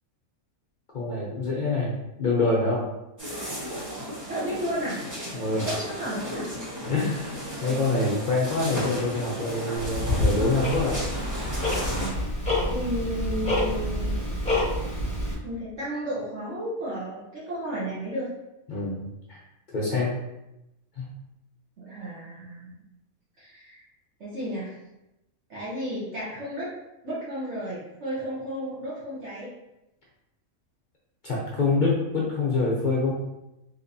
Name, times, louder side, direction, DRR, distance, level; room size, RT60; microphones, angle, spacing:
voice 1, 0.9-2.9 5.3-5.8 6.8-11.0 11.9-12.2 18.7-19.1 19.7-20.1 21.0-21.1 31.2-33.1, left 3 dB, 55° left, -5 dB, 0.5 m, -26 dB
sound 1, 3.2-12.1, equal, 15° right, 0.9 m, -35 dB
voice 2, 4.3-5.1 5.6-6.5 12.7-14.3 15.4-18.3 21.8-22.8 23.4-23.8 24.2-24.8 25.5-26.7 27.0-29.5, equal, 55° right, -8 dB, 1.1 m, -33 dB
Tick-tock, 9.8-15.3, left 1 dB, 5° left, 0.5 m, -27 dB
3.3 x 2.9 x 2.6 m, 0.91 s
omnidirectional pair, 1.5 m